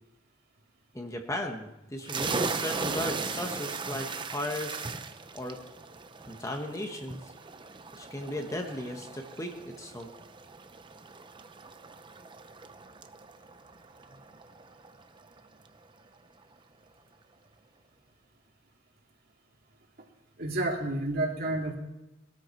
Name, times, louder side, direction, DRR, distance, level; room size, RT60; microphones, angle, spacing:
voice 1, 0.9-4.8 5.3-5.6 6.3-7.2 8.0-10.1, left 1 dB, 15° left, 3 dB, 1.4 m, -36 dB
sound 1, 2.0-15.4, right 4 dB, 25° right, 0.7 m, -38 dB
voice 2, 20.4-21.8, right 2 dB, 50° right, 0 dB, 2.6 m, -30 dB
20.0 x 13.0 x 4.6 m, 0.94 s
head